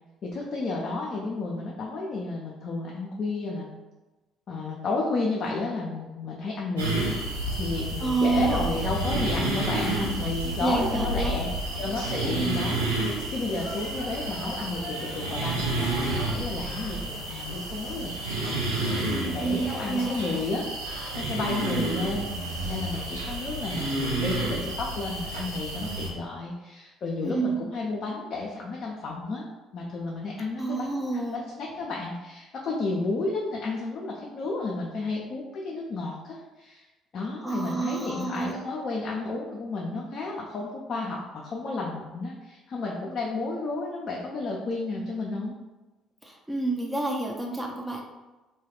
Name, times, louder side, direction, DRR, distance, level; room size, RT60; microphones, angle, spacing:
voice 1, 0.2-3.7 4.5-7.1 7.6-11.5 11.8-18.1 19.3-20.7 21.1-22.3 22.6-29.5 29.7-36.9 37.1-45.6, left 3 dB, 50° left, -3 dB, 0.4 m, -32 dB
sound 1, 6.8-26.1, right 2 dB, 80° right, 0.6 m, -30 dB
voice 2, 8.0-8.7 9.1-9.2 9.7-10.1 10.6-11.3 12.2-12.7 19.1-20.3 21.6-21.9 27.2-27.6 30.6-31.4 37.4-38.6 46.2-48.0, right 3 dB, 10° right, 0 dB, 0.5 m, -29 dB
sound 2, 10.9-16.3, right 1 dB, 55° right, 0.9 m, -42 dB
2.2 x 2.2 x 3.4 m, 1.1 s
figure-of-eight pair, 50°, 0 cm